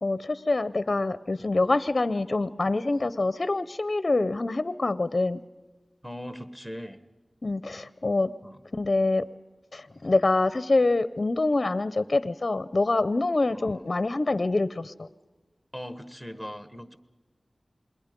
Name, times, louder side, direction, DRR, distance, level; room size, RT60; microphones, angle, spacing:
voice 1, 0.0-5.4 7.4-8.3 8.7-9.2 9.7-15.1, left 2 dB, 50° left, 15 dB, 0.6 m, -25 dB
voice 2, 6.0-7.0 8.4-8.6 13.5-13.8 15.7-17.0, equal, 5° right, 11 dB, 1.5 m, -40 dB
27.5 x 21.5 x 5.2 m, 1.3 s
wide cardioid pair, 65°, 0 cm